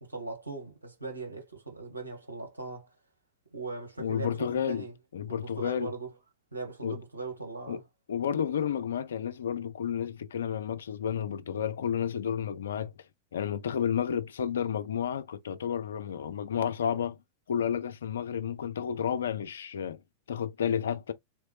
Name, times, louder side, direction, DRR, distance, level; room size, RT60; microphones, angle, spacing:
voice 1, 0.0-2.9 3.5-4.9 5.3-6.1 6.5-7.8, right 4 dB, 85° right, 1.1 m, -39 dB
voice 2, 4.0-4.8 5.1-5.9 6.8-7.0 7.7-7.8 8.1-12.9 13.3-17.2 17.5-20.0 20.3-21.1, left 8 dB, 65° left, 0.4 m, -31 dB
3.6 x 3.0 x 2.8 m
figure-of-eight pair, 90°, 0 cm